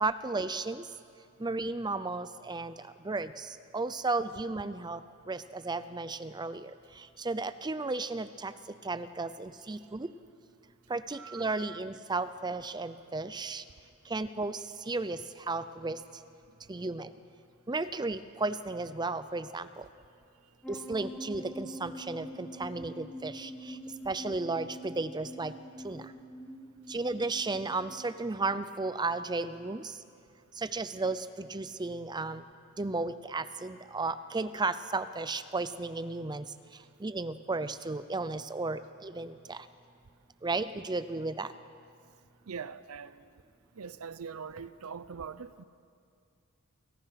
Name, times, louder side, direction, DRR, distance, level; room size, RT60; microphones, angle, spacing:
voice 1, 0.0-0.8 1.4-2.7 3.1-3.5 3.7-5.0 5.3-6.7 7.2-8.5 8.8-10.1 10.9-13.6 14.1-14.6 14.9-15.2 15.5-16.0 16.7-17.1 17.7-19.7 20.7-23.5 24.1-25.5 25.8-26.0 26.9-29.8 30.6-32.4 32.8-36.4 37.0-39.6 40.4-41.5, right 3 dB, 20° right, 0.6 m, -34 dB
voice 2, 11.1-11.8 42.5-43.4 43.7-45.6, right 6 dB, 75° right, 0.6 m, -43 dB
sound 1, 20.6-28.1, equal, 5° left, 1.3 m, -45 dB
29.5 x 23.5 x 5.9 m
head